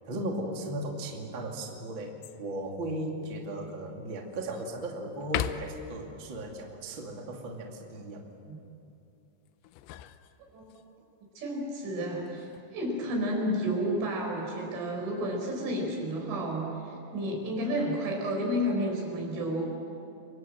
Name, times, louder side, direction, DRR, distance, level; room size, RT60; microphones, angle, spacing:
voice 1, 0.1-2.1 2.4-8.3, right 1 dB, 35° right, 1 dB, 2.2 m, -36 dB
sound 1, 2.2-2.7 3.2-3.3 3.9-4.7 5.2-6.0 9.5-10.8 12.2-12.7, left 12 dB, 80° left, 2.7 m, -38 dB
voice 2, 11.4-19.6, equal, 75° right, 0 dB, 7.3 m, -31 dB
30.0 x 24.0 x 7.8 m, 2.7 s
omnidirectional pair, 5.7 m